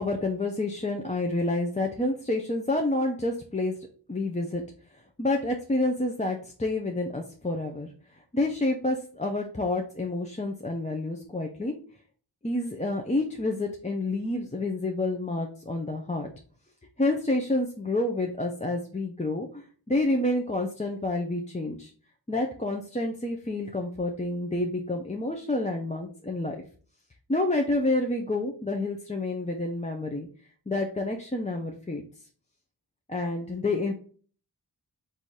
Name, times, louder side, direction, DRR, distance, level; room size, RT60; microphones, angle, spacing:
voice 1, 0.0-3.7 4.1-4.6 5.2-7.9 8.3-11.7 12.4-16.3 17.0-21.9 22.3-26.6 27.3-30.3 30.7-32.0 33.1-33.9, left 2 dB, 15° left, 1 dB, 0.6 m, -28 dB
4.0 x 2.7 x 4.6 m, 0.42 s
wide cardioid pair, 50°, 40 cm